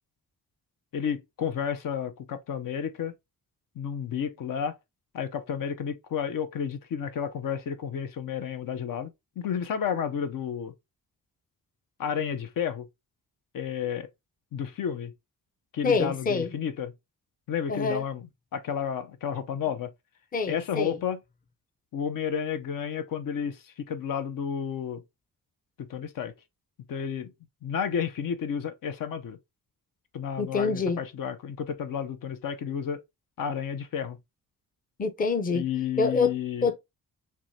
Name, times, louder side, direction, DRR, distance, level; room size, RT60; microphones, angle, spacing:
voice 1, 0.9-3.1 3.8-4.7 5.1-9.1 9.4-10.7 12.0-12.9 13.5-14.1 14.5-15.1 15.7-16.9 17.5-18.2 18.5-19.9 20.5-21.2 21.9-25.0 25.8-26.3 26.9-27.3 27.6-29.4 30.1-33.0 33.4-34.2 35.5-36.7, left 7 dB, 70° left, 0.6 m, -31 dB
voice 2, 15.8-16.5 17.7-18.1 20.3-21.0 30.4-31.0 35.0-35.7 36.0-36.3 36.6-36.8, left 4 dB, 25° left, 0.6 m, -26 dB
6.0 x 2.2 x 2.7 m
cardioid pair, 95°, 34 cm